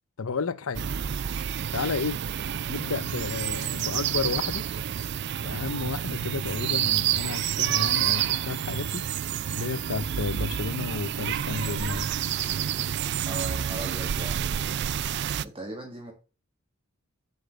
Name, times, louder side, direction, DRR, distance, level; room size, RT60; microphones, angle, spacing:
voice 1, 0.2-0.9 1.7-2.2 2.7-4.6 5.4-9.1 9.5-12.1, left 4 dB, 85° left, 0.7 m, -32 dB
sound 1, 0.7-15.4, right 9 dB, 55° right, 0.4 m, -29 dB
voice 2, 13.3-14.9 15.4-16.1, right 2 dB, 25° right, 1.8 m, -39 dB
7.9 x 5.4 x 6.7 m
head